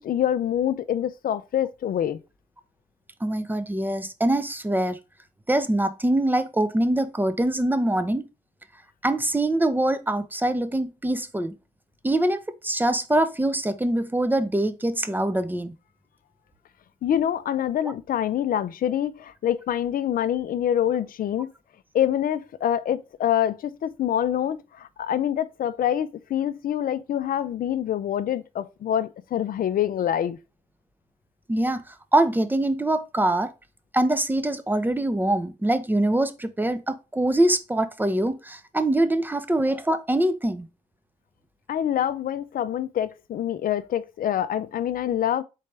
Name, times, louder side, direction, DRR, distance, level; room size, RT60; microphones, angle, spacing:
voice 1, 0.0-2.2 17.0-21.5 21.9-30.4 41.7-45.4, left 10 dB, 60° left, 0.5 m, -26 dB
voice 2, 3.2-5.0 5.5-8.3 9.0-11.5 12.0-15.7 17.8-17.9 31.5-33.5 33.9-40.7, right 1 dB, 10° right, 0.7 m, -24 dB
4.1 x 3.2 x 3.3 m
supercardioid pair, 55°, 17 cm